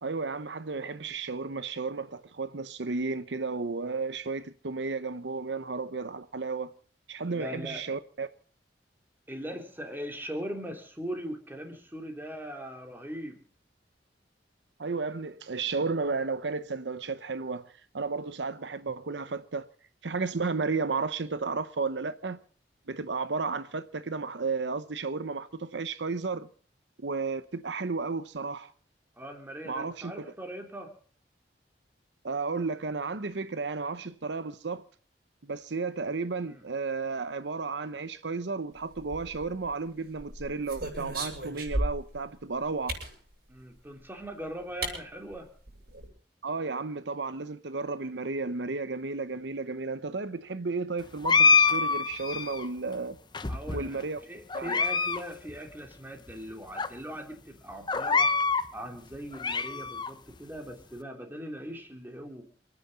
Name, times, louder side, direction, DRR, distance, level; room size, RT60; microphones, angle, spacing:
voice 1, 0.0-6.7 7.1-8.3 14.8-19.6 20.0-22.4 22.9-26.5 27.0-28.7 29.7-30.3 32.2-34.8 35.4-43.0 46.4-53.2 53.7-54.2 54.5-54.7, right 4 dB, 80° right, 0.8 m, -33 dB
voice 2, 7.3-7.8 9.3-13.4 29.2-30.9 36.4-36.6 43.5-45.5 53.5-58.3 58.7-62.4, equal, 10° right, 3.1 m, -40 dB
sound 1, 39.0-39.7 40.2-42.2 42.9-43.1 44.2-44.3 44.8-45.0 45.3-45.4 45.7-46.1, right 1 dB, 60° right, 7.7 m, -34 dB
sound 2, 51.2-52.7 53.3-54.0 54.5-55.2 55.5-55.6 56.3-56.4 56.8-56.9 57.9-58.7 59.1-60.1, left 5 dB, 25° left, 0.8 m, -25 dB
28.5 x 9.9 x 4.1 m
head